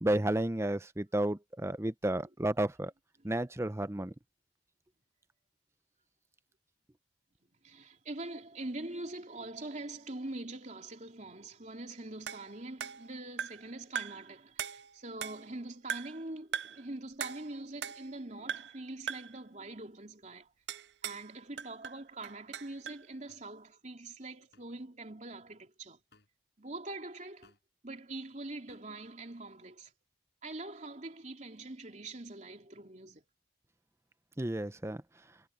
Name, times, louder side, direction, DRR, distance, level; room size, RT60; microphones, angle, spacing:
voice 1, 0.0-2.9 3.2-4.1 34.4-35.0, right 1 dB, 15° right, 0.7 m, -32 dB
voice 2, 7.6-20.5 21.0-26.0 26.6-27.5 27.8-29.9 30.4-33.2, right 2 dB, 40° right, 3.4 m, -44 dB
sound 1, 12.3-13.7 14.0-14.3 14.6-15.6 15.9-16.2 16.5-16.9 17.2-18.2 18.5-18.8 19.1-19.4 20.7-21.3 21.6-23.1, right 8 dB, 80° right, 0.5 m, -40 dB
sound 2, 23.3-23.4 24.5-24.6 26.1-26.3 27.4-27.6 28.7-28.8, left 3 dB, 65° left, 7.1 m, -63 dB
head